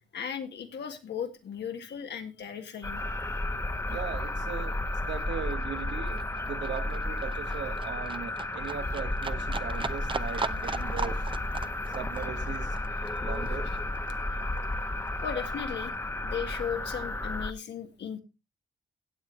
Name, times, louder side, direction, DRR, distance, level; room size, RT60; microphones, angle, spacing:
voice 1, 0.1-3.0 15.2-15.9 16.2-18.2, left 8 dB, 70° left, 1.7 m, -36 dB
sound 1, 2.8-17.5, left 1 dB, 15° left, 1.0 m, -33 dB
Livestock farm animals working animals, 3.8-14.8 15.1-16.1 16.4-16.5, right 4 dB, 25° right, 0.7 m, -39 dB
voice 2, 3.9-11.2 11.9-12.8 13.2-13.7, right 8 dB, 80° right, 1.3 m, -39 dB
17.0 x 7.8 x 3.2 m
cardioid pair, 75°, 18 cm